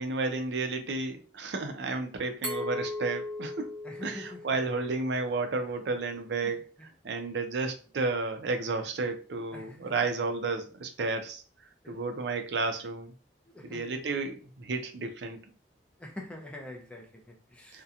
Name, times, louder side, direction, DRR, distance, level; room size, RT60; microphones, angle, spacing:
voice 1, 0.0-3.7 4.0-6.7 7.0-11.4 11.9-13.1 13.6-15.4 17.7-17.8, right 3 dB, 65° right, 0.5 m, -32 dB
Glass, 2.4-5.2, left 2 dB, 15° right, 0.8 m, -38 dB
voice 2, 3.8-4.5 6.4-6.9 9.5-9.9 11.8-12.0 13.5-14.0 16.0-17.8, left 1 dB, 5° left, 0.4 m, -45 dB
2.7 x 2.1 x 2.4 m
head